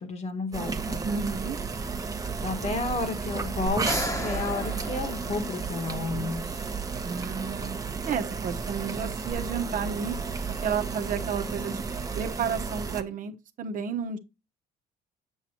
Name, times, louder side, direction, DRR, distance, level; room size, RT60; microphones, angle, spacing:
voice 1, 0.0-1.0 2.4-6.7, left 3 dB, 40° left, 1.7 m, -32 dB
sound 1, 0.5-13.0, right 5 dB, 20° right, 0.9 m, -33 dB
voice 2, 1.0-1.6 7.0-7.8 8.1-10.2 10.6-11.8 12.2-14.2, right 6 dB, 55° right, 1.0 m, -31 dB
sound 2, 3.7-6.0 9.3-9.4, equal, 20° left, 1.3 m, -34 dB
7.2 x 6.9 x 2.9 m
cardioid pair, 110°, 17 cm